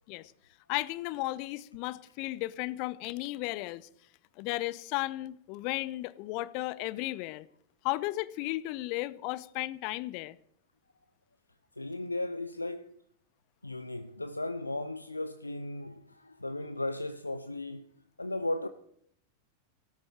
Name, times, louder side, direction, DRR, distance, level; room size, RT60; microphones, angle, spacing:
voice 1, 0.7-3.9 4.4-7.5 7.8-10.4, left 18 dB, 45° left, 0.7 m, -34 dB
voice 2, 11.8-12.9 13.6-17.9 18.2-18.7, left 2 dB, 85° left, 0.6 m, -36 dB
17.0 x 13.0 x 4.5 m
figure-of-eight pair, 90°, 0 cm